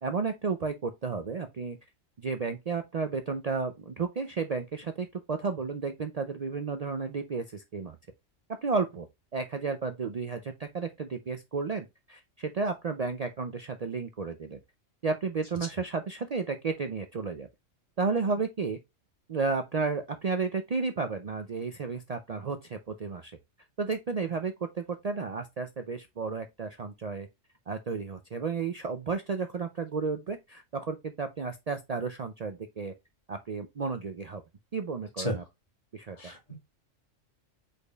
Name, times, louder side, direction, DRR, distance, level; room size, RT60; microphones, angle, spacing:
voice 1, 0.0-1.8 2.2-8.0 8.6-9.1 9.3-14.6 15.0-17.5 18.0-18.8 19.3-23.3 23.8-27.3 27.7-32.9 33.3-34.4 34.7-35.4 35.9-36.3, right 4 dB, 60° right, 0.4 m, -32 dB
voice 2, 36.1-36.6, equal, 30° left, 2.0 m, -33 dB
5.0 x 4.3 x 2.3 m
omnidirectional pair, 1.3 m